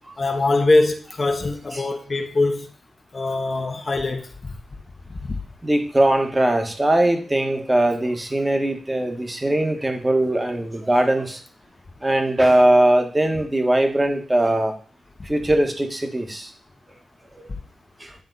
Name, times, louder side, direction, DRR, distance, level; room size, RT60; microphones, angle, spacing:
voice 1, 0.2-2.7 3.1-4.3 5.2-5.4, left 2 dB, 50° left, 1.3 m, -22 dB
voice 2, 5.6-11.4 12.0-14.7 15.2-16.5 17.3-17.4 18.0-18.1, right 1 dB, 25° right, 1.7 m, -20 dB
10.5 x 3.6 x 4.1 m
cardioid pair, 45°, 0 cm